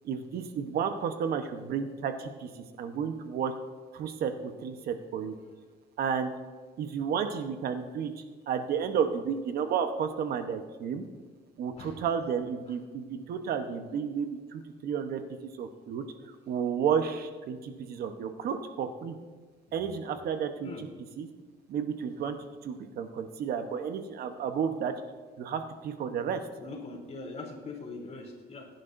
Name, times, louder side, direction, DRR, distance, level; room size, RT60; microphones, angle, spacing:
voice 1, 0.0-2.5 2.8-3.5 3.9-5.3 6.0-6.3 6.8-8.1 8.5-11.0 11.6-15.2 15.6-16.0 16.5-19.1 19.7-20.9 21.2-21.3 21.7-22.4 22.6-24.9 25.4-26.4, right 7 dB, 65° right, 7 dB, 1.0 m, -32 dB
voice 2, 11.8-12.1 12.7-12.8 19.7-19.8 20.6-20.9 26.6-28.7, left 3 dB, 40° left, -1 dB, 3.4 m, -42 dB
20.5 x 10.5 x 2.6 m, 1.4 s
cardioid pair, 110°, 17 cm